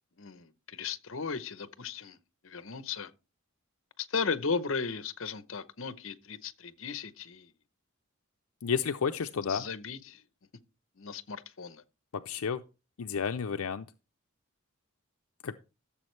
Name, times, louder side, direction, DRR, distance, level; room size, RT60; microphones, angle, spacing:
voice 1, 0.2-2.2 2.4-3.1 4.0-7.5 9.5-10.2 11.0-11.8, left 5 dB, 65° left, 0.8 m, -36 dB
voice 2, 8.6-9.6 12.1-12.6 13.0-13.9 15.4-15.6, left 6 dB, 80° left, 0.5 m, -31 dB
14.5 x 7.2 x 3.2 m
head